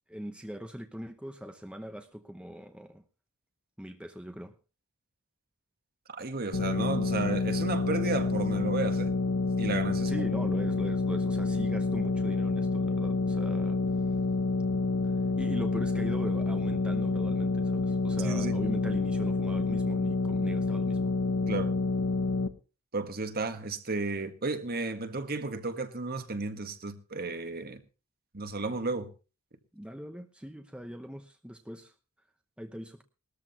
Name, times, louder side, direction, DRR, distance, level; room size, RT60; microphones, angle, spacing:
voice 1, 0.1-3.0 3.8-4.5 10.1-13.8 15.0-21.1 29.7-31.9 32.6-33.0, equal, 5° right, 0.8 m, -41 dB
voice 2, 6.1-9.1 9.6-10.1 18.2-18.6 21.5-21.7 22.9-27.8 28.3-29.1, right 3 dB, 45° right, 1.6 m, -33 dB
sound 1, 6.5-22.5, left 3 dB, 80° left, 1.1 m, -28 dB
19.5 x 13.5 x 2.9 m
head